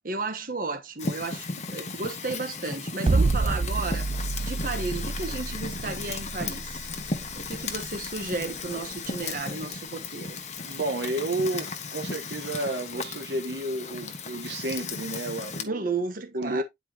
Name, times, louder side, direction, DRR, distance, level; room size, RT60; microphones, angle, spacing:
voice 1, 0.0-4.1 4.4-6.9 7.3-10.4 15.6-16.6, right 3 dB, 50° right, 1.3 m, -33 dB
Fire, 1.0-15.6, left 4 dB, 40° left, 1.4 m, -35 dB
sound 1, 3.1-9.2, right 3 dB, 35° right, 0.4 m, -28 dB
voice 2, 10.6-15.8 16.3-16.6, right 1 dB, 75° right, 1.3 m, -31 dB
10.0 x 4.9 x 2.9 m
head